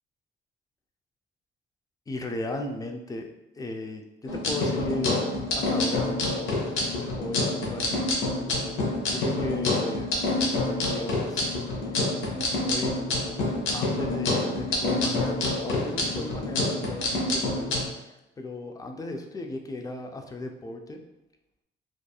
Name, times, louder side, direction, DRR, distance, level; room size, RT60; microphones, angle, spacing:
voice 1, 2.1-3.3 3.5-5.1 5.5-6.1 6.6-8.4 8.7-8.8 9.1-10.1 10.9-12.0 12.3-13.0 13.7-21.0, left 2 dB, 20° left, 3 dB, 0.3 m, -36 dB
sound 1, 4.3-17.8, left 2 dB, 80° left, 0.7 m, -27 dB
2.6 x 2.4 x 2.3 m, 0.90 s
cardioid pair, 90°, 20 cm